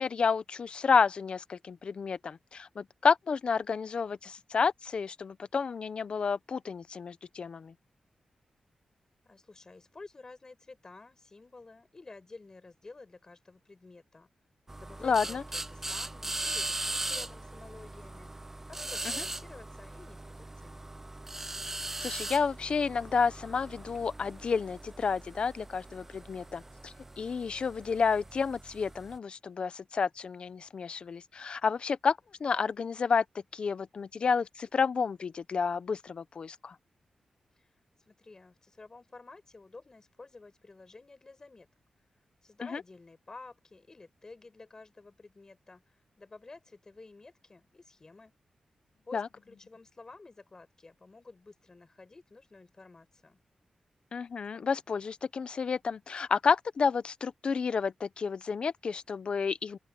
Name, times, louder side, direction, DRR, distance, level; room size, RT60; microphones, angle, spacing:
voice 1, 0.0-7.7 15.0-15.4 19.2-19.3 22.0-33.2 33.5-36.8 42.6-42.8 49.1-49.3 54.1-59.8, left 5 dB, 50° left, 0.8 m, -30 dB
voice 2, 9.2-14.3 14.8-18.3 18.7-20.9 37.5-37.7 38.0-41.7 42.4-48.3 49.0-53.4, left 3 dB, 30° left, 4.6 m, -51 dB
sound 1, 14.7-29.2, right 2 dB, 15° right, 0.4 m, -40 dB
open air
wide cardioid pair, 145°, 2 cm